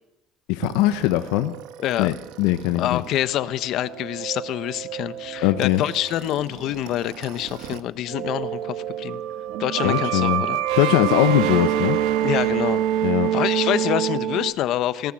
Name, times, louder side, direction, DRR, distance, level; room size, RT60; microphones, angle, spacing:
voice 1, 0.5-1.5 2.0-3.0 5.4-5.8 9.8-10.4 10.8-12.0 13.0-13.3, left 15 dB, 90° left, 8 dB, 1.0 m, -21 dB
sound 1, 0.6-7.8 8.1-14.5, right 11 dB, 80° right, 1.4 m, -27 dB
voice 2, 1.8-2.1 2.7-9.2 9.6-10.6 12.2-12.8 13.3-15.1, left 13 dB, 60° left, 13 dB, 1.1 m, -26 dB
20.0 x 19.0 x 7.7 m, 0.94 s
cardioid pair, 130°, 0 cm